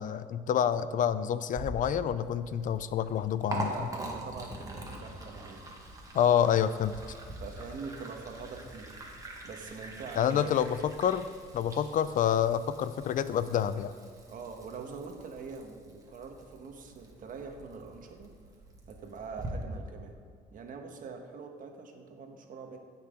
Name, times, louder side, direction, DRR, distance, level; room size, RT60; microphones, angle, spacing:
voice 1, 0.0-3.7 6.1-6.9 10.2-11.3 11.5-13.9, left 9 dB, 50° left, 14 dB, 0.4 m, -28 dB
Liquid, 1.5-19.5, right 1 dB, 20° right, 1.7 m, -44 dB
voice 2, 3.5-5.7 7.4-9.0 9.4-10.5 14.3-18.3 18.9-20.1 20.5-22.8, right 5 dB, 55° right, 4 dB, 1.4 m, -43 dB
16.0 x 5.9 x 3.8 m, 2.2 s
cardioid pair, 110°, 17 cm